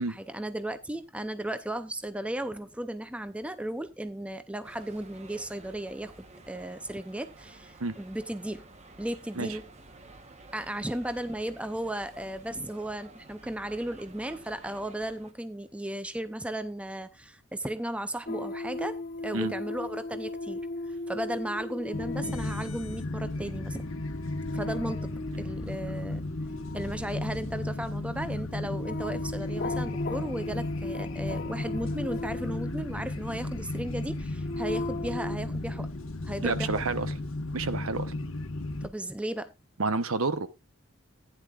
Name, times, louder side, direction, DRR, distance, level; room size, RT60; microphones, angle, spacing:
voice 1, 0.0-8.6 9.0-9.6 10.5-19.0 19.2-20.6 20.9-23.8 24.5-25.1 25.4-26.3 26.7-35.9 36.2-36.8 38.8-39.5, right 1 dB, 5° right, 0.6 m, -35 dB
sound 1, 4.6-15.3, right 2 dB, 30° right, 1.1 m, -51 dB
sound 2, 18.3-33.4 34.0-35.4, left 2 dB, 40° left, 0.6 m, -38 dB
sound 3, 21.9-38.9, left 2 dB, 60° left, 1.3 m, -35 dB
voice 2, 36.4-37.1 37.5-38.1 39.8-40.5, right 3 dB, 70° right, 1.0 m, -29 dB
15.0 x 10.0 x 2.4 m
head